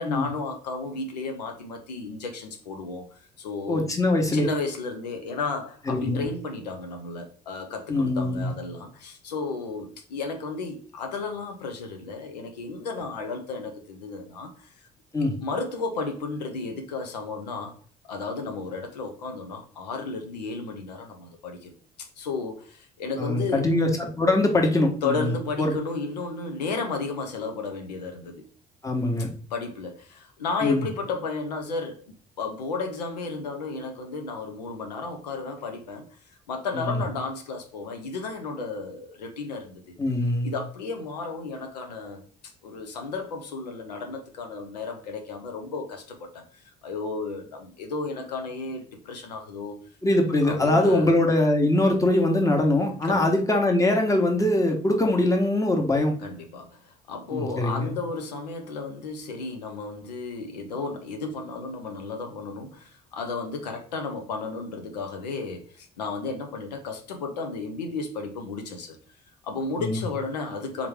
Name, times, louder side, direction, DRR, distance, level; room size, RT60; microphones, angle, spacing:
voice 1, 0.0-3.9 4.3-14.9 15.4-17.8 18.0-21.7 22.2-23.7 25.0-28.4 29.5-32.1 32.4-39.9 40.4-42.2 42.6-49.8 50.4-51.1 53.0-53.4 56.2-69.2 69.4-70.9, left 4 dB, 85° left, 0.5 m, -33 dB
voice 2, 3.7-4.5 5.9-6.2 7.9-8.5 15.1-15.3 23.2-25.3 25.6-25.7 28.8-29.3 30.6-30.8 36.8-37.0 40.0-40.5 50.0-56.1 57.3-57.9 69.8-70.0, left 1 dB, 15° left, 1.1 m, -22 dB
3.5 x 3.0 x 3.4 m
hypercardioid pair, 55°, 21 cm